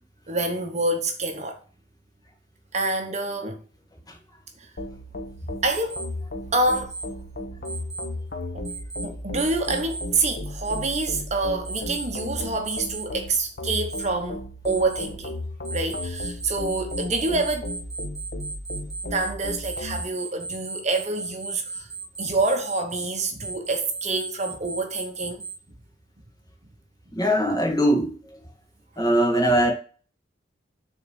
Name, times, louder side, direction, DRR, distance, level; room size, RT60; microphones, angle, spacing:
voice 1, 0.3-1.6 2.7-3.6 4.6-4.7 5.6-6.0 6.5-6.9 9.0-15.3 15.7-17.7 19.0-21.9 22.2-25.4, right 2 dB, 40° right, 1.1 m, -27 dB
sound 1, 4.8-20.0, left 1 dB, 55° left, 1.1 m, -35 dB
Alarm, 5.7-6.0 6.6-7.0 7.6-8.0 8.6-9.0 9.6-10.0 10.6-11.0 11.6-12.0 12.6-13.0 13.6-14.0 14.6-15.0 15.6-25.5, right 4 dB, ahead, 3.1 m, -35 dB
voice 2, 27.1-28.1 29.0-29.7, equal, 20° left, 2.0 m, -20 dB
6.7 x 3.8 x 6.3 m
head